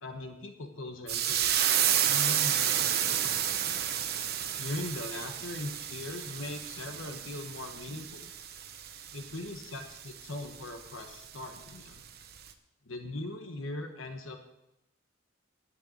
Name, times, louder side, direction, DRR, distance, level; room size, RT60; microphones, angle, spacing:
voice 1, 0.0-3.7 4.6-8.3 9.1-12.0 12.9-14.4, left 2 dB, 80° left, 6 dB, 1.3 m, -40 dB
sound 1, 1.1-12.0 12.4-12.5, right 10 dB, 50° right, 1.0 m, -31 dB
11.0 x 6.9 x 9.0 m, 0.89 s
head